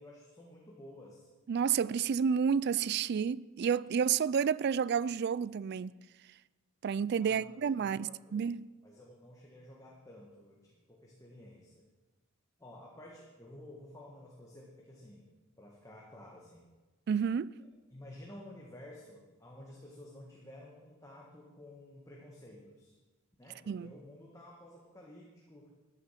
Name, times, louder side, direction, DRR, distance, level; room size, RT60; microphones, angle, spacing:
voice 1, 0.0-1.3 7.2-8.5 8.8-11.8 12.6-15.3 15.6-16.7 17.6-23.0 23.4-25.7, left 1 dB, 15° left, 1.6 m, -52 dB
voice 2, 1.5-5.9 6.8-8.7 17.1-17.6 23.7-23.9, right 7 dB, 50° right, 0.3 m, -30 dB
14.0 x 9.8 x 5.8 m
head